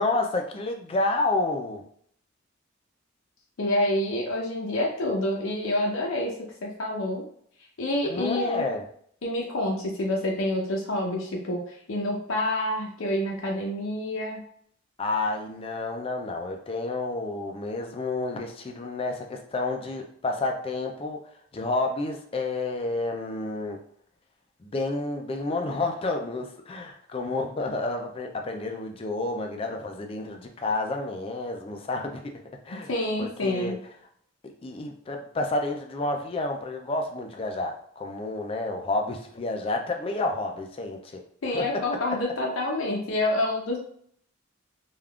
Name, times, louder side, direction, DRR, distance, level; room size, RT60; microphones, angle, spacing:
voice 1, 0.0-1.9 8.0-8.8 15.0-21.2 21.5-23.8 24.6-32.2 32.7-32.9 33.2-33.7 34.6-41.1 41.5-41.6, left 2 dB, 30° left, 3 dB, 0.4 m, -30 dB
voice 2, 3.6-6.3 6.6-7.2 7.8-8.7 9.2-14.4 32.7-33.8 41.4-43.8, left 1 dB, 90° left, -2 dB, 0.6 m, -28 dB
3.4 x 2.3 x 2.3 m, 0.63 s
head